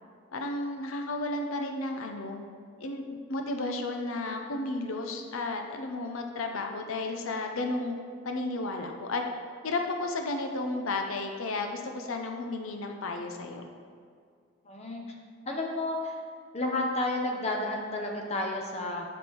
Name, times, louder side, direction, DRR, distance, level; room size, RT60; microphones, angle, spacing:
voice 1, 0.3-2.4 2.8-8.0 8.2-9.2 9.6-13.7, left 2 dB, 75° left, 4 dB, 0.6 m, -33 dB
voice 2, 14.6-15.0 15.5-16.2 16.5-19.0, left 2 dB, 30° left, 1 dB, 0.7 m, -31 dB
7.0 x 5.2 x 4.5 m, 2.1 s
head